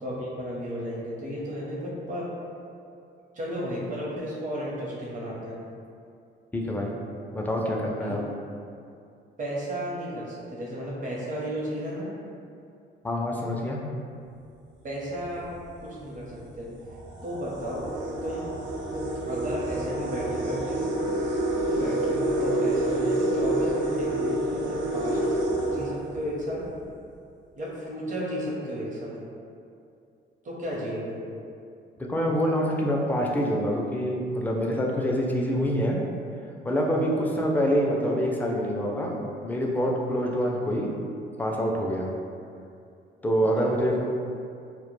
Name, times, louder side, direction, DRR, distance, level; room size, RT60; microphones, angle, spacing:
voice 1, 0.0-2.3 3.3-5.6 8.1-8.2 9.4-12.1 14.8-15.5 15.8-16.7 17.2-17.9 18.2-18.5 18.9-20.8 21.6-25.2 25.6-26.7 27.6-29.2 30.4-31.2 37.1-37.4 43.6-44.0, equal, 40° right, -5 dB, 0.7 m, -33 dB
voice 2, 6.5-6.9 7.3-8.2 13.0-13.8 32.1-36.0 36.6-39.1 39.4-40.9 41.4-42.1 43.2-44.0, equal, 10° left, -1 dB, 0.3 m, -26 dB
sound 1, 15.2-15.5 16.3-16.4 16.8-26.6, right 1 dB, 70° right, 0.4 m, -28 dB
2.1 x 2.1 x 3.0 m, 2.5 s
cardioid pair, 90°, 20 cm